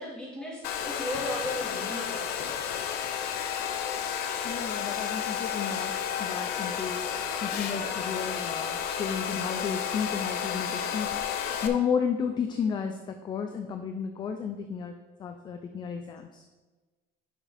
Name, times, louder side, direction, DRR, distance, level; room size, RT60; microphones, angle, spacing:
voice 1, 0.0-2.8, left 1 dB, 5° left, -6 dB, 2.5 m, -36 dB
Domestic sounds home sounds, 0.6-11.7, left 8 dB, 60° left, 0.8 m, -32 dB
voice 2, 4.4-7.1 7.4-14.9 15.2-16.4, left 7 dB, 25° left, 6 dB, 0.4 m, -33 dB
10.5 x 6.2 x 3.4 m, 1.2 s
cardioid pair, 175°, 19 cm